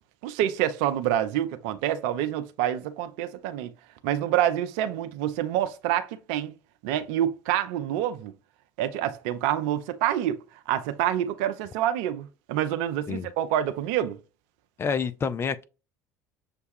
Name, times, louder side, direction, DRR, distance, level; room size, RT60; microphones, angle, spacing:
voice 1, 0.2-3.7 4.0-6.5 6.8-8.3 8.8-10.4 10.7-14.2, right 11 dB, 60° right, 0.5 m, -27 dB
voice 2, 14.8-15.6, left 6 dB, 30° left, 0.4 m, -28 dB
6.5 x 2.3 x 2.6 m
figure-of-eight pair, 60°, 9 cm